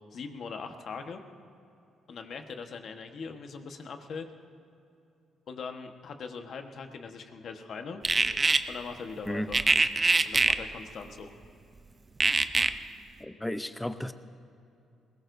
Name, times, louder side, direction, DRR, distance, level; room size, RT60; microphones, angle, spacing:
voice 1, 0.1-1.2 2.1-4.3 5.5-8.0 8.7-9.6 10.2-11.3, left 5 dB, 60° left, 5 dB, 1.3 m, -41 dB
sound 1, 8.0-8.6 9.5-10.6 12.2-12.7, right 3 dB, 30° right, 0.6 m, -23 dB
voice 2, 13.2-14.1, left 1 dB, 5° left, 10 dB, 0.7 m, -33 dB
21.0 x 19.0 x 2.7 m, 2.7 s
cardioid pair, 90°, 0 cm